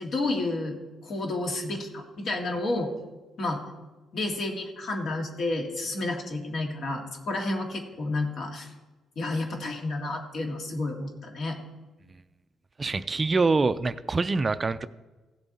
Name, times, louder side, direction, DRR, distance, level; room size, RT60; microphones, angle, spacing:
voice 1, 0.0-2.9 3.4-3.6 4.1-8.7 9.2-11.6, left 2 dB, 60° left, 2 dB, 2.0 m, -30 dB
voice 2, 12.8-14.9, right 3 dB, 30° right, 13 dB, 0.4 m, -25 dB
16.0 x 7.0 x 4.1 m, 1.2 s
cardioid pair, 90°, 0 cm